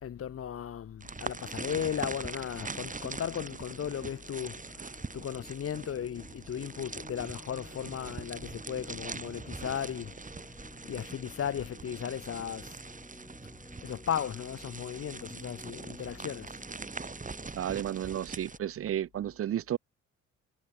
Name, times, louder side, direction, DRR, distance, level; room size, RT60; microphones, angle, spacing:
voice 1, 0.0-10.2 10.8-12.8 13.8-16.6, left 9 dB, 50° left, 1.2 m, -36 dB
sound 1, 1.0-18.6, right 4 dB, 25° right, 4.6 m, -43 dB
sound 2, 1.3-17.5, equal, ahead, 3.7 m, -53 dB
voice 2, 17.5-19.8, right 11 dB, 50° right, 0.6 m, -32 dB
cardioid pair, 90°, 30 cm